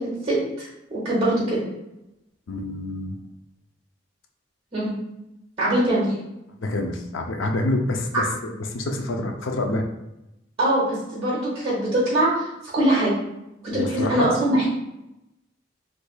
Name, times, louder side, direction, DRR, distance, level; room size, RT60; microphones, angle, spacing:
voice 1, 0.0-1.6 4.7-4.9 5.6-6.1 10.6-12.5 12.7-13.1 13.6-14.6, right 1 dB, 30° right, -7 dB, 0.9 m, -22 dB
voice 2, 2.5-3.1 6.6-9.9 13.7-14.3, left 2 dB, 80° left, 4 dB, 0.5 m, -27 dB
3.2 x 3.2 x 2.2 m, 0.90 s
head